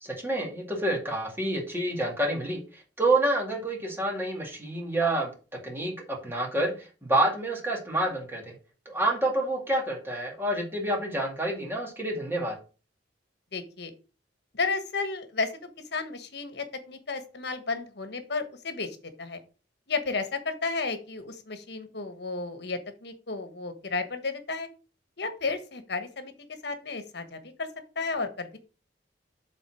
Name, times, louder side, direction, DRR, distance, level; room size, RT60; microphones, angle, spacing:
voice 1, 0.0-2.6 3.0-5.3 5.6-8.5 8.9-12.6, right 1 dB, 15° right, 0 dB, 2.2 m, -28 dB
voice 2, 13.5-13.9 14.5-19.4 19.9-24.7 25.2-26.3 26.6-27.7 27.9-28.6, left 4 dB, 65° left, 9 dB, 1.3 m, -33 dB
7.3 x 4.1 x 6.0 m, 0.35 s
head